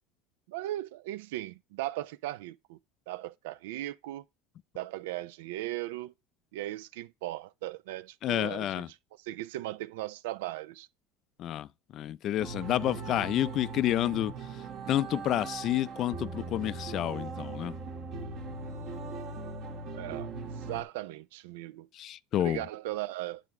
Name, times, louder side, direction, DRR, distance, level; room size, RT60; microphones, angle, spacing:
voice 1, 0.5-2.8 3.1-4.2 4.7-6.1 6.5-10.9 19.9-21.9 22.4-23.4, right 15 dB, 85° right, 0.4 m, -38 dB
voice 2, 8.2-8.9 11.4-17.7 21.9-22.6, left 13 dB, 45° left, 0.4 m, -30 dB
sound 1, 12.4-20.8, right 4 dB, 50° right, 1.5 m, -39 dB
9.0 x 3.4 x 4.7 m
supercardioid pair, 130°, 0 cm